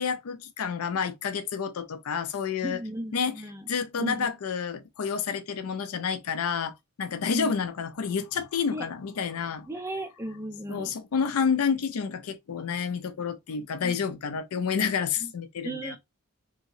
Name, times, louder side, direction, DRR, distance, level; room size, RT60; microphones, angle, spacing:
voice 1, 0.0-2.8 3.1-9.7 10.7-16.0, left 6 dB, 70° left, 0.4 m, -29 dB
voice 2, 2.6-3.7 4.0-4.3 7.3-7.5 8.7-8.9 9.7-10.9 13.8-14.0 15.2-15.3 15.6-16.0, right 1 dB, 10° right, 0.4 m, -35 dB
2.8 x 2.8 x 2.6 m
head